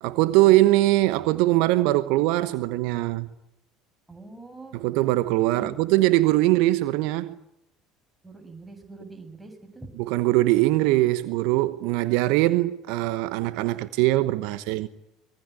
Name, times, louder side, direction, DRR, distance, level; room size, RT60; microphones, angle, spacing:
voice 1, 0.0-3.3 4.7-7.4 10.0-14.9, right 17 dB, 65° right, 1.1 m, -22 dB
voice 2, 4.1-4.8 5.5-5.7 8.2-9.9, right 2 dB, 5° right, 7.5 m, -43 dB
25.0 x 23.0 x 9.8 m
figure-of-eight pair, 65°, 0 cm